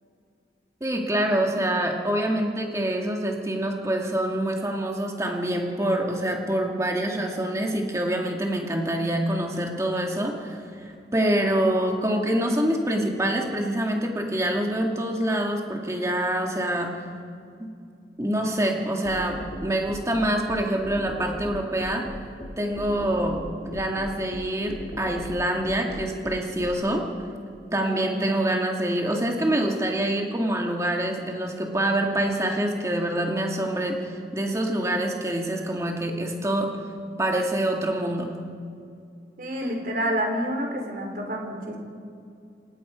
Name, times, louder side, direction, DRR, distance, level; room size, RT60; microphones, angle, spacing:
voice 1, 0.8-17.0 17.6-17.7 18.2-22.0 22.6-23.4 23.7-27.0 27.7-36.7 37.2-38.3, right 1 dB, 15° right, 1 dB, 2.1 m, -26 dB
sound 1, 19.0-26.7, equal, 40° left, 2.9 m, -37 dB
voice 2, 27.9-28.2 39.4-41.8, equal, 50° right, 2 dB, 3.9 m, -29 dB
28.5 x 17.5 x 5.2 m, 2.4 s
head